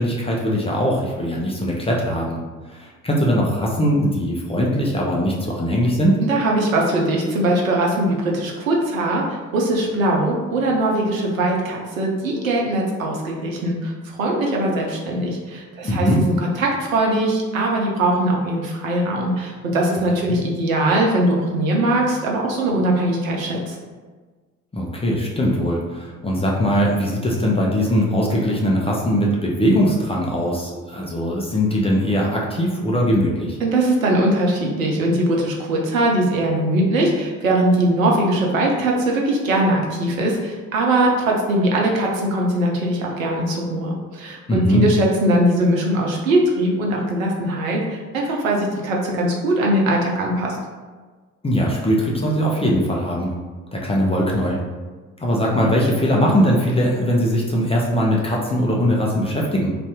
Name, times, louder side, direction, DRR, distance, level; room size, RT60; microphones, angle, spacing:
voice 1, 0.0-2.4 2.7-6.2 15.8-16.2 20.3-20.4 24.7-33.6 44.5-44.8 51.4-53.3 53.7-54.6 55.2-59.8, equal, 15° left, -3 dB, 0.6 m, -20 dB
voice 2, 6.2-23.8 33.6-50.6, right 1 dB, 85° right, -1 dB, 0.6 m, -21 dB
2.6 x 2.5 x 3.4 m, 1.4 s
figure-of-eight pair, 50°, 39 cm